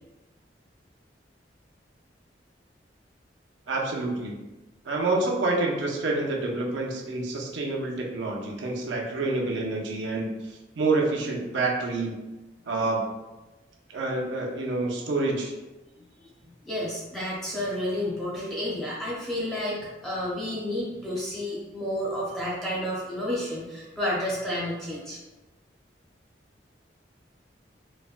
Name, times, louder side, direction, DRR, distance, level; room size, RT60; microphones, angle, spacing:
voice 1, 3.7-4.4 4.9-10.3 10.7-12.2 12.7-13.0 13.9-15.5, right 2 dB, 90° right, -1 dB, 0.5 m, -27 dB
voice 2, 15.9-25.2, left 1 dB, ahead, -8 dB, 0.6 m, -31 dB
3.2 x 2.1 x 2.4 m, 1.1 s
head